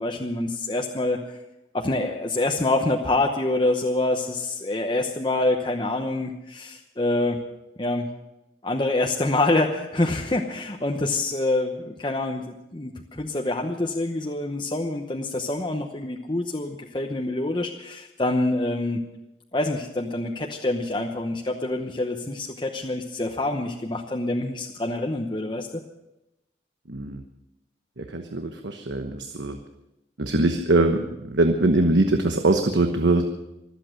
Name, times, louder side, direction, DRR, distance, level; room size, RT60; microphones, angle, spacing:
voice 1, 0.0-1.4 1.7-7.4 7.8-8.1 8.6-19.0 19.5-25.8, left 2 dB, 25° left, 2 dB, 0.9 m, -26 dB
voice 2, 26.9-27.2 28.0-29.6 30.2-33.3, right 2 dB, 80° right, 5 dB, 1.2 m, -22 dB
25.0 x 8.5 x 6.6 m, 0.91 s
head